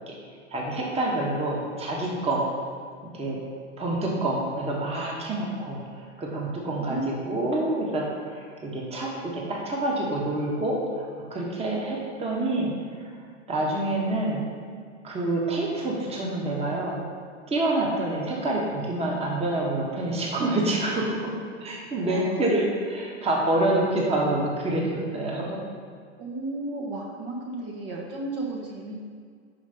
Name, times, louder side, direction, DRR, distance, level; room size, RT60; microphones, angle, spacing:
voice 1, 0.5-2.5 3.0-3.4 3.8-7.0 7.3-12.7 13.5-14.4 15.0-17.0 17.5-25.6, right 1 dB, 15° right, -3 dB, 1.3 m, -27 dB
voice 2, 6.8-7.3 22.0-22.6 26.2-29.0, right 2 dB, 50° right, -2 dB, 1.4 m, -34 dB
5.5 x 5.1 x 5.4 m, 2.1 s
hypercardioid pair, 95°, 36 cm